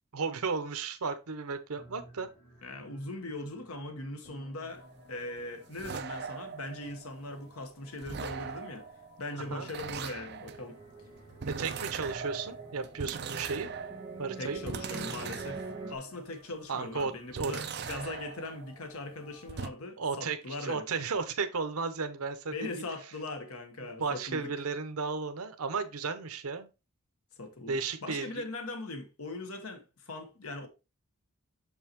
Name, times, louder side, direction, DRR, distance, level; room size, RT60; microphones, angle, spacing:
voice 1, 0.1-2.3 9.5-9.7 11.5-13.7 14.2-14.6 16.7-17.5 20.0-22.5 24.0-26.7 27.7-28.4, right 4 dB, 90° right, 0.8 m, -34 dB
sound 1, 1.7-19.6, left 1 dB, 55° left, 3.9 m, -58 dB
voice 2, 2.6-8.9 9.2-10.8 14.4-20.8 22.5-24.5 27.4-30.7, left 2 dB, 80° left, 1.2 m, -40 dB
sound 2, 4.6-7.6 8.0-16.5 17.0-19.2 19.5-19.7, right 6 dB, 50° right, 0.5 m, -41 dB
sound 3, 9.8-16.0, right 3 dB, 20° right, 1.6 m, -46 dB
6.5 x 5.4 x 2.9 m
head